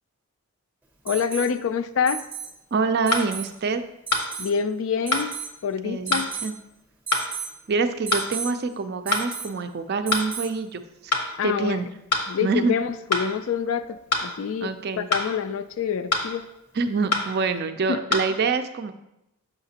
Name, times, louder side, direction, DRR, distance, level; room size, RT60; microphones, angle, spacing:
voice 1, 1.1-2.2 4.4-5.3 5.6-6.3 11.4-11.8 12.3-16.5 17.9-18.0, left 7 dB, 65° left, 11 dB, 0.3 m, -26 dB
Alarm, 1.1-1.5 2.1-2.5 3.1-3.5 4.1-4.5 5.1-5.6 6.1-6.5 7.1-7.5 8.1-8.5 9.1-9.6 10.1-10.6 12.3-12.4, right 7 dB, 5° right, 0.7 m, -34 dB
voice 2, 2.7-3.8 5.8-6.5 7.7-11.1 11.4-11.9 12.4-12.8 14.6-15.1 16.7-18.9, right 4 dB, 45° right, 9 dB, 0.4 m, -26 dB
sound 1, 3.1-3.3 4.1-4.3 5.1-5.3 6.1-6.3 7.1-7.3 8.1-8.3 9.1-9.3 10.1-10.3 11.1-11.3 12.1-12.3 13.1-13.3 14.1-14.3 15.1-15.3 16.1-16.3 17.1-17.3 18.1-18.2, left 2 dB, 85° left, 1.0 m, -23 dB
7.0 x 5.7 x 2.8 m, 0.86 s
head